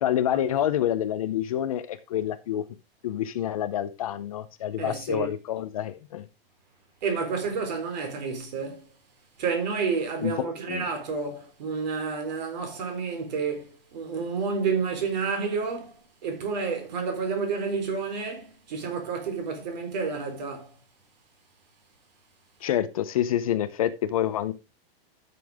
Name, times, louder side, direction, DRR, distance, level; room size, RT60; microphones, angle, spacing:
voice 1, 0.0-2.6 3.0-6.3 10.2-10.9 22.6-24.5, left 11 dB, 35° left, 0.7 m, -27 dB
voice 2, 4.8-5.3 7.0-8.9 9.4-20.7, right 5 dB, 45° right, 3.9 m, -30 dB
13.0 x 7.0 x 3.5 m
supercardioid pair, 180°, 30 cm